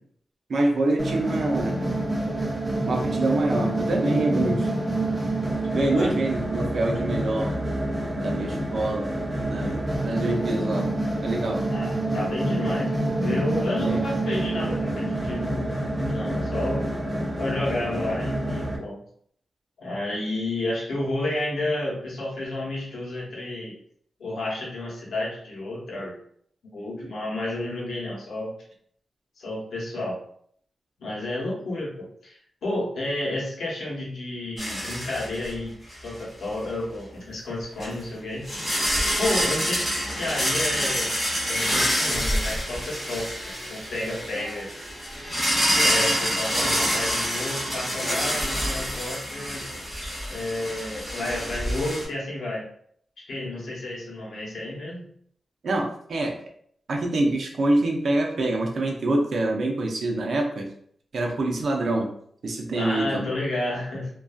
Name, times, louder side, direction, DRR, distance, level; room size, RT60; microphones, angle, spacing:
voice 1, 0.5-1.8 2.8-4.7 5.7-7.5 8.1-9.1 9.5-10.9 11.2-11.6 13.8-14.0 55.6-56.3 56.9-60.7 61.1-62.1 62.4-63.2, right 2 dB, 60° right, 1 dB, 0.5 m, -25 dB
sound 1, 1.0-18.8, right 1 dB, 5° right, 0.4 m, -27 dB
voice 2, 11.7-16.9 17.4-19.0 19.8-23.8 24.2-26.2 26.7-28.5 29.4-30.2 31.0-35.8 36.0-38.5 39.2-41.1 41.5-44.7 45.7-49.7 50.3-52.7 53.3-55.1 62.7-64.1, left 1 dB, 80° left, -4 dB, 0.9 m, -31 dB
sound 2, 34.6-35.6 35.9-36.1 37.8-37.9 38.4-52.0, equal, 15° left, 0.9 m, -27 dB
2.5 x 2.3 x 2.3 m, 0.64 s
wide cardioid pair, 165°, 0 cm